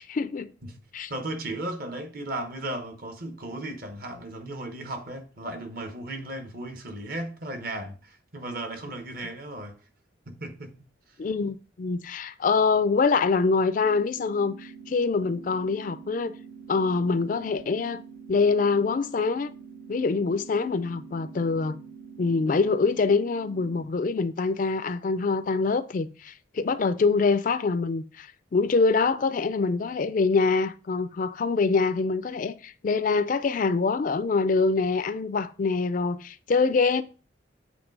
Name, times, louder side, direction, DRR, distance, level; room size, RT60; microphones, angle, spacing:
voice 1, 0.0-0.5 0.9-1.1 11.2-16.3 16.7-18.0 18.3-19.5 19.9-21.8 22.2-37.0, left 4 dB, 45° left, 0.4 m, -25 dB
voice 2, 1.1-9.8 10.3-10.8, right 1 dB, 50° right, 1.0 m, -35 dB
sound 1, 13.8-23.8, right 6 dB, 80° right, 2.7 m, -46 dB
8.0 x 3.1 x 5.2 m
head